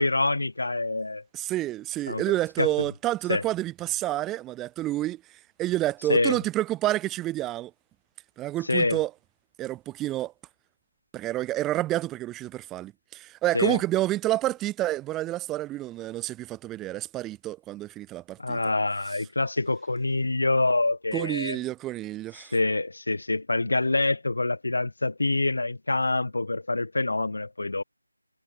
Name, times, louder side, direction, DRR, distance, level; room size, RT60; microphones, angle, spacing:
voice 1, 0.0-1.2 2.1-2.2 2.6-2.7 3.3-3.4 6.1-6.4 8.7-9.0 13.5-13.8 18.4-21.6 22.5-27.8, left 2 dB, 60° left, 1.2 m, -26 dB
voice 2, 1.3-5.2 5.6-7.7 8.4-9.1 9.6-10.3 11.1-18.6 21.1-22.5, right 15 dB, 10° right, 0.3 m, -29 dB
figure-of-eight pair, 160°, 0 cm